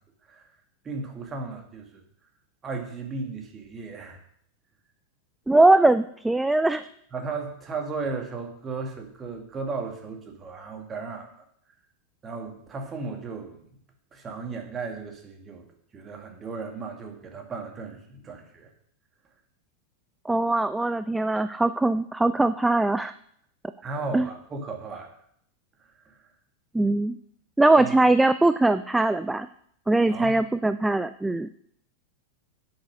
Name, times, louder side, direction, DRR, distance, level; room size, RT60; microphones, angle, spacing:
voice 1, 0.8-2.0 2.6-4.2 7.1-11.3 12.2-13.6 14.1-15.7 15.9-18.7 23.8-25.1 25.8-26.2 27.8-27.9 30.1-30.4, right 4 dB, 20° right, 3 dB, 2.2 m, -35 dB
voice 2, 5.5-6.8 20.3-23.1 24.1-24.3 26.7-27.2 27.6-29.5 29.9-31.5, right 2 dB, 5° right, 13 dB, 0.4 m, -21 dB
9.5 x 8.8 x 5.2 m, 0.66 s
figure-of-eight pair, 90°, 0 cm